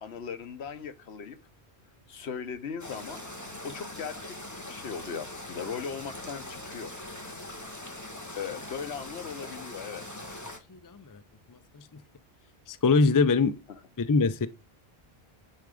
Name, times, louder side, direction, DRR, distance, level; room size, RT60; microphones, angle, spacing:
voice 1, 0.0-1.4 2.1-3.2 3.6-6.9 8.3-10.0, left 6 dB, 80° left, 1.1 m, -38 dB
sound 1, 2.8-10.6, left 1 dB, 15° left, 1.3 m, -42 dB
voice 2, 10.7-11.2 11.5-11.8 12.7-13.6 14.0-14.5, left 4 dB, 30° left, 0.3 m, -24 dB
10.0 x 3.8 x 4.9 m
omnidirectional pair, 1.1 m